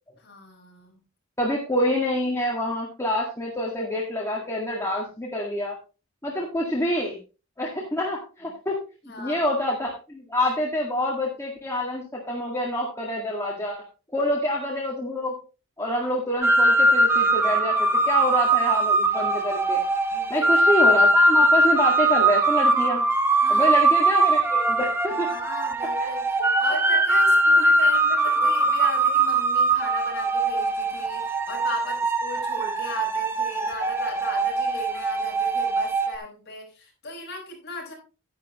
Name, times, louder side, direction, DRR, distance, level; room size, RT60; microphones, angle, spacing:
voice 1, 0.2-1.0 6.3-6.4 9.0-9.4 20.1-20.5 23.4-23.7 25.1-37.9, left 2 dB, 45° left, -1 dB, 5.0 m, -37 dB
voice 2, 1.4-5.8 6.2-7.2 7.6-8.8 9.2-13.7 14.1-15.3 15.8-19.8 20.3-23.0 23.5-25.3 28.4-28.5, left 1 dB, 10° left, -3 dB, 1.8 m, -26 dB
sound 1, 16.4-36.2, right 2 dB, 10° right, 0.7 m, -21 dB
10.5 x 10.5 x 3.0 m, 0.32 s
head